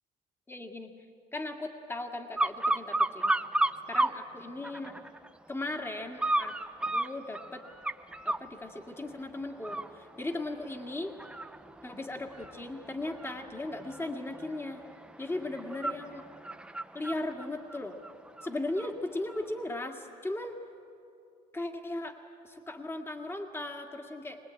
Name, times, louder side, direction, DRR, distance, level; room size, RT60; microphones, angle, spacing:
voice 1, 0.5-0.9 1.3-3.4 3.9-4.9 5.5-6.6 6.9-7.6 8.2-11.1 11.8-14.8 15.2-16.2 16.9-18.0 18.4-20.6 21.5-22.2 22.4-24.4, left 2 dB, 15° left, 4 dB, 2.0 m, -37 dB
sound 1, 2.4-4.2 4.6-5.3 6.2-8.5 9.0-9.2 9.6-18.9 19.3-19.4, right 2 dB, 5° right, 0.5 m, -33 dB
23.5 x 20.0 x 8.9 m, 2.6 s
cardioid pair, 110°, 17 cm